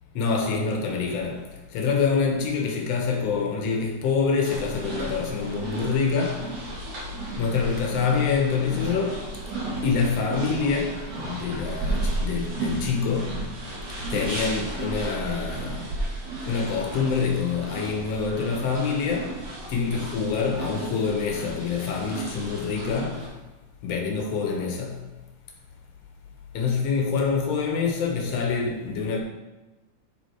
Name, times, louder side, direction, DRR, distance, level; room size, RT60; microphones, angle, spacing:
voice 1, 0.2-6.5 7.4-9.3 9.8-13.4 14.1-15.9 16.5-19.4 19.7-23.3 23.8-25.0 26.5-29.2, left 5 dB, 60° left, 2.0 m, -26 dB
sound 1, 4.4-23.3, right 2 dB, 65° right, 3.8 m, -34 dB
11.5 x 4.0 x 4.7 m
omnidirectional pair, 3.6 m